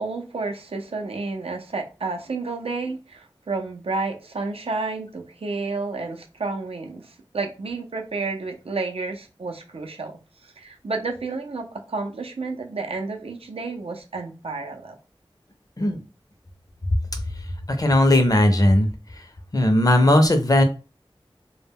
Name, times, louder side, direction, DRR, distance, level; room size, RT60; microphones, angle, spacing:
voice 1, 0.0-14.9, right 3 dB, 85° right, 0.5 m, -31 dB
voice 2, 17.8-18.9 19.5-20.6, left 1 dB, 40° left, 0.5 m, -17 dB
2.1 x 2.1 x 3.4 m
wide cardioid pair, 55°, 10 cm